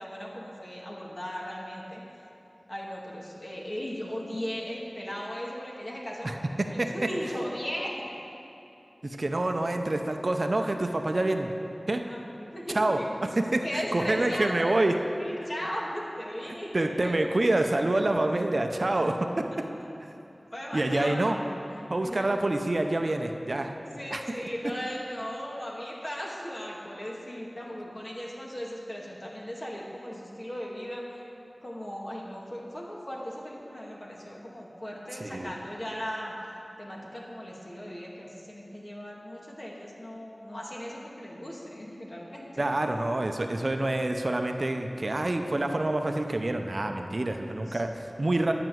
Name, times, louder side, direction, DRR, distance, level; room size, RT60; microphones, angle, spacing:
voice 1, 0.0-2.0 2.7-6.4 6.7-8.2 12.0-12.3 12.5-13.0 13.6-14.7 15.2-17.2 19.5-19.6 20.5-21.6 22.0-22.3 23.9-31.2 31.6-36.3 36.8-42.7 47.0-47.3 47.7-47.8, equal, 45° left, -4 dB, 2.0 m, -37 dB
voice 2, 6.2-6.9 9.0-11.5 11.9-12.0 12.7-14.9 16.7-19.5 20.0-20.1 20.7-21.4 21.9-23.7 24.1-24.2 35.2-35.5 42.6-48.5, right 2 dB, 55° right, 5 dB, 0.6 m, -27 dB
11.0 x 5.9 x 7.8 m, 2.8 s
wide cardioid pair, 60°, 0 cm